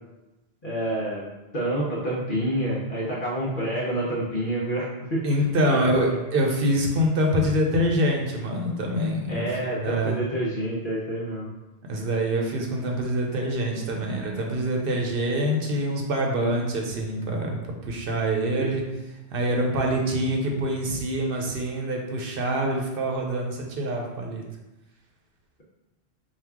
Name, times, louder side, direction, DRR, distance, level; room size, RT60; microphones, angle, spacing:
voice 1, 0.6-1.3 1.5-5.2 5.6-6.2 9.3-11.5 18.6-18.7, right 1 dB, 55° left, -6 dB, 0.9 m, -28 dB
voice 2, 5.2-10.2 11.9-17.6 17.8-18.8 19.3-24.4, equal, 60° right, 1 dB, 0.9 m, -25 dB
4.6 x 2.4 x 3.5 m, 1.0 s
omnidirectional pair, 1.1 m